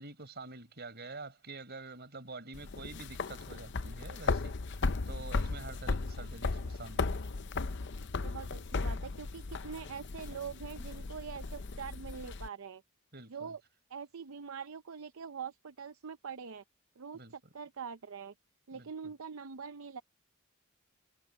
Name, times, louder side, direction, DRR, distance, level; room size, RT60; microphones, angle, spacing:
voice 1, 0.0-7.3 13.1-13.5 17.1-17.3 18.7-18.9, right 3 dB, 50° right, 4.9 m, -47 dB
sound 1, 2.5-12.5, left 3 dB, 55° left, 0.7 m, -36 dB
voice 2, 8.2-12.8 13.3-13.6 13.9-16.6 17.0-18.3 18.7-20.0, right 6 dB, 70° right, 0.6 m, -44 dB
head